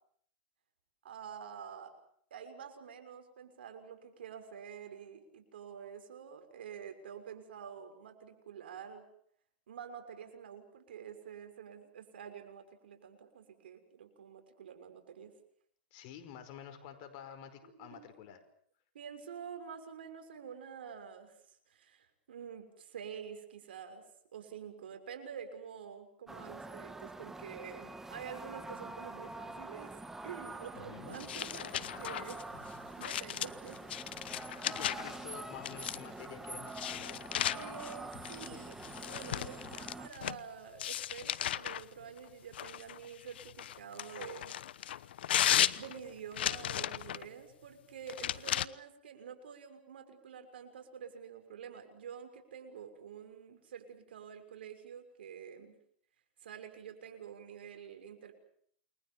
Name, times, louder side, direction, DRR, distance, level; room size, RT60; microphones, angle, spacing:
voice 1, 1.0-1.9 2.3-9.0 9.7-15.3 17.6-18.1 18.9-24.1 24.3-32.4 33.0-33.8 37.5-44.6 45.7-55.7 56.4-58.3, right 7 dB, 85° right, 7 dB, 6.4 m, -48 dB
voice 2, 15.9-18.4 30.7-31.2 34.6-37.2, left 9 dB, 50° left, 7 dB, 5.0 m, -49 dB
sound 1, 26.3-40.1, right 2 dB, 5° right, 2.1 m, -46 dB
sound 2, 31.1-35.2 35.6-36.2 36.7-40.4 40.8-41.8 42.5-47.3 48.1-48.7, left 11 dB, 80° left, 1.0 m, -35 dB
29.0 x 22.0 x 7.3 m, 0.64 s
hypercardioid pair, 135°, 5 cm